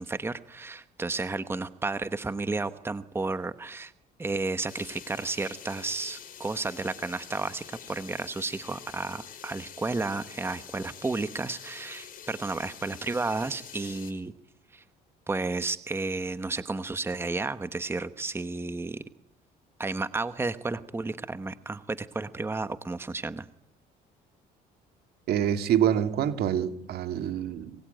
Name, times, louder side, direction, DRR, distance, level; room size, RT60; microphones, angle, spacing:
voice 1, 0.0-3.9 4.2-14.3 14.7-14.8 15.3-19.0 19.8-23.5, right 3 dB, 15° right, 12 dB, 1.1 m, -32 dB
sound 1, 4.7-14.1, left 9 dB, 55° left, 5.4 m, -46 dB
voice 2, 25.3-27.8, right 10 dB, 70° right, 9 dB, 2.2 m, -26 dB
26.0 x 22.5 x 9.2 m, 0.76 s
cardioid pair, 110°, 17 cm